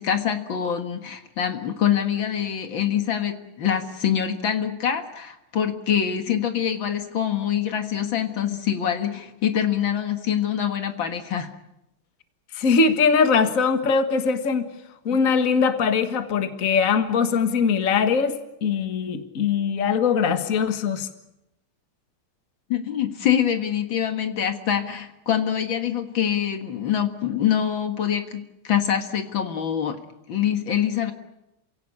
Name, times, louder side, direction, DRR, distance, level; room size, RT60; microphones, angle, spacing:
voice 1, 0.0-11.5 15.1-15.2 22.7-30.0 30.3-31.1, left 9 dB, 65° left, 7 dB, 2.4 m, -25 dB
voice 2, 12.5-14.6 15.1-21.1, left 5 dB, 40° left, 8 dB, 1.8 m, -21 dB
28.0 x 17.5 x 9.9 m, 0.91 s
omnidirectional pair, 2.3 m